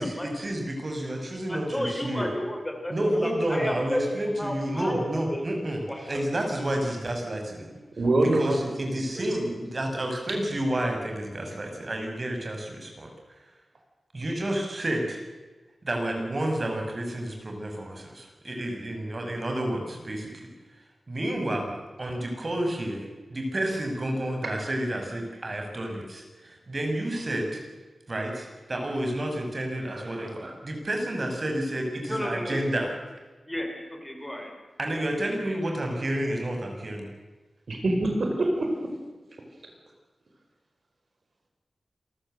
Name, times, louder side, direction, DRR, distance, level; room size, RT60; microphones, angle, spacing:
voice 1, 0.0-2.3 2.9-7.7 8.2-13.1 14.1-15.2 15.8-20.5 21.1-23.0 23.3-27.6 28.1-32.9 34.8-37.1, right 1 dB, 45° right, 2 dB, 6.2 m, -30 dB
voice 2, 1.5-2.9 3.2-5.4 5.9-6.2 32.1-32.7 33.5-34.5, left 1 dB, 15° left, 3 dB, 4.6 m, -32 dB
voice 3, 8.0-9.6 29.9-30.5 37.7-38.8, right 2 dB, 65° right, 2 dB, 4.8 m, -26 dB
27.0 x 14.0 x 7.9 m, 1.2 s
wide cardioid pair, 65°, 0 cm